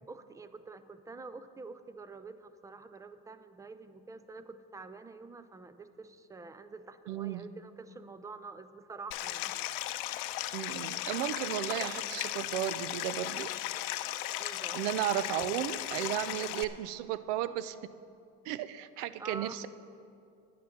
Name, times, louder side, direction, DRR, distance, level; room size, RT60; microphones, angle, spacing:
voice 1, 0.0-9.6 14.4-14.9 19.2-19.6, right 3 dB, 10° right, 12 dB, 0.4 m, -47 dB
voice 2, 7.1-7.5 10.5-13.5 14.7-17.8 18.5-19.7, right 12 dB, 80° right, 15 dB, 0.6 m, -34 dB
Stream, 9.1-16.6, left 15 dB, 65° left, 0.6 m, -36 dB
10.0 x 9.4 x 5.9 m, 2.5 s
supercardioid pair, 105°, 36 cm